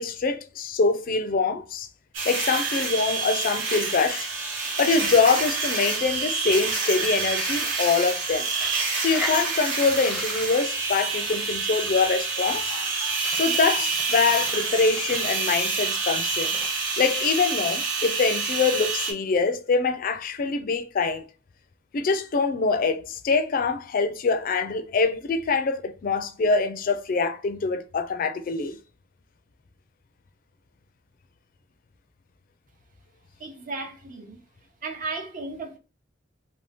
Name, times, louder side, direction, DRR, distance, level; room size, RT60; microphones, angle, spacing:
voice 1, 0.0-1.9 2.3-4.3 4.8-8.5 9.0-16.6 17.0-21.2 21.9-28.8, left 4 dB, 50° left, 0.4 m, -24 dB
sound 1, 2.1-19.1, right 4 dB, 80° right, 1.0 m, -28 dB
Coin (dropping), 8.5-16.7, left 1 dB, ahead, 0.6 m, -38 dB
voice 2, 33.4-34.4 34.8-35.8, right 3 dB, 45° right, 0.7 m, -35 dB
2.7 x 2.7 x 3.5 m
head